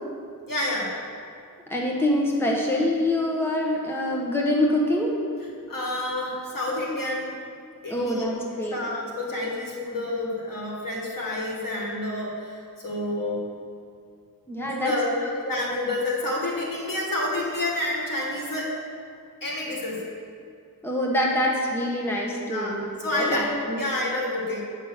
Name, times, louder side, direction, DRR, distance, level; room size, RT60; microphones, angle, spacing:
voice 1, 0.5-1.0 5.7-7.3 7.8-8.2 8.6-13.5 14.6-15.1 15.4-18.8 19.4-20.0 22.4-24.6, left 1 dB, 65° left, -3 dB, 2.1 m, -29 dB
voice 2, 1.7-5.2 6.2-6.3 7.9-8.8 14.5-14.9 15.2-15.3 20.8-23.8, left 1 dB, 5° left, -2 dB, 1.2 m, -25 dB
9.0 x 5.7 x 6.5 m, 2.3 s
wide cardioid pair, 100°, 36 cm